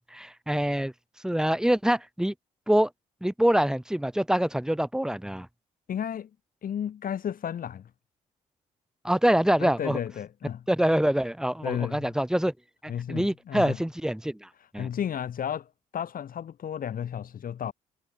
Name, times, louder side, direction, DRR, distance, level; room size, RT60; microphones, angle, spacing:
voice 1, 0.1-0.9 1.2-2.3 2.7-2.9 3.2-5.5 9.0-10.0 10.7-12.5 12.8-14.5 14.7-14.9, right 1 dB, 5° right, 2.2 m, -25 dB
voice 2, 5.9-6.3 6.6-7.9 9.6-10.6 11.6-12.1 12.9-13.8 14.8-17.7, left 9 dB, 50° left, 1.5 m, -33 dB
supercardioid pair, 60°, 18 cm